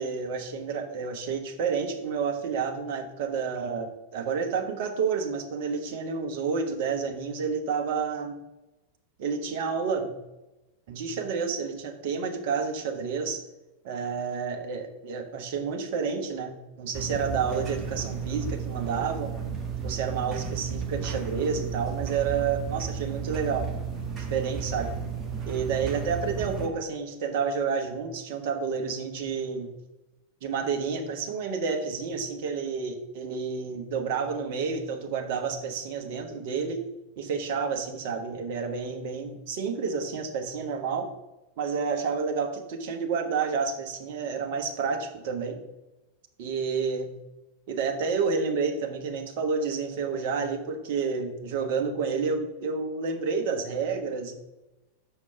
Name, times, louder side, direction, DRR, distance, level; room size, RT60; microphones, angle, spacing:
voice 1, 0.0-8.4 9.2-10.1 10.9-13.4 13.8-19.4 19.8-23.7 24.2-25.0 25.4-29.7 30.4-36.8 37.2-41.1 41.6-45.6 46.4-47.1 47.7-54.3, right 5 dB, 50° right, 4 dB, 1.2 m, -30 dB
sound 1, 16.9-26.7, right 6 dB, 20° right, 1.6 m, -33 dB
6.8 x 5.0 x 5.8 m, 1.0 s
figure-of-eight pair, 90°, 0 cm